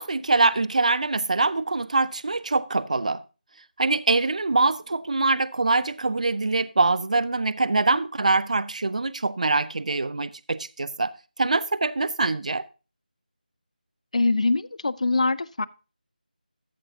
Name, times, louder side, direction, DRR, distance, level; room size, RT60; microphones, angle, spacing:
voice 1, 0.0-3.2 3.8-11.1 11.4-12.6, right 3 dB, 50° right, 0.4 m, -24 dB
voice 2, 14.1-15.7, left 3 dB, 45° left, 0.4 m, -23 dB
14.0 x 6.7 x 2.7 m
figure-of-eight pair, 160°, 5 cm